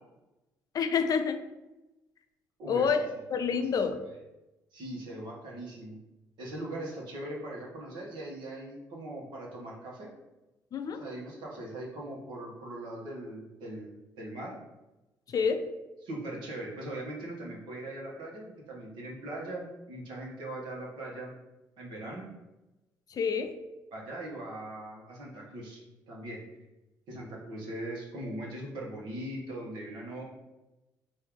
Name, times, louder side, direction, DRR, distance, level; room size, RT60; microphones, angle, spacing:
voice 1, 0.7-1.4 2.7-4.0 10.7-11.0 15.3-15.7 23.1-23.6, left 6 dB, 50° left, 8 dB, 0.4 m, -28 dB
voice 2, 2.6-2.9 4.7-6.0 6.4-10.1 10.9-14.5 16.0-21.4 21.8-22.3 23.9-26.4 27.1-30.2, right 1 dB, 75° right, -2 dB, 1.2 m, -40 dB
4.3 x 2.7 x 3.6 m, 1.0 s
supercardioid pair, 70°, 8 cm